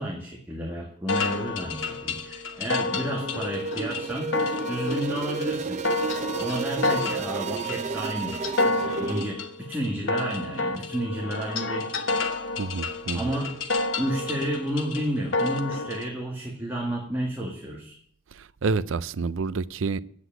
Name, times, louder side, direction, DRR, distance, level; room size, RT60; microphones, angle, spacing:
voice 1, 0.0-4.3 4.7-5.8 6.4-8.4 8.7-11.9 13.1-13.6 14.0-17.9, right 1 dB, 10° right, 1.8 m, -31 dB
sound 1, 1.1-16.1, left 3 dB, 85° left, 1.2 m, -30 dB
sound 2, 3.2-9.2, right 4 dB, 35° right, 0.5 m, -32 dB
voice 2, 12.6-13.3 18.4-20.0, right 4 dB, 90° right, 0.5 m, -28 dB
9.7 x 8.2 x 9.1 m
head